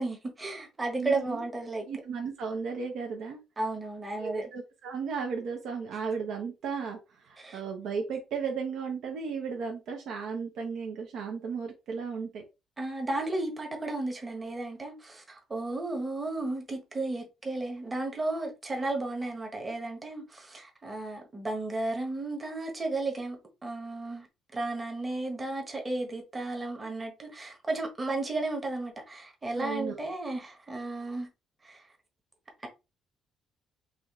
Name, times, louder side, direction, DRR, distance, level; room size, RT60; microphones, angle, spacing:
voice 1, 0.0-1.9 3.6-4.5 7.4-7.6 12.8-24.3 24.5-31.3 31.6-31.8, right 2 dB, 15° right, 1.2 m, -34 dB
voice 2, 1.0-1.4 1.8-3.4 4.2-12.4 29.5-30.1, right 5 dB, 65° right, 1.0 m, -35 dB
5.0 x 2.5 x 3.7 m
cardioid pair, 160°, 0 cm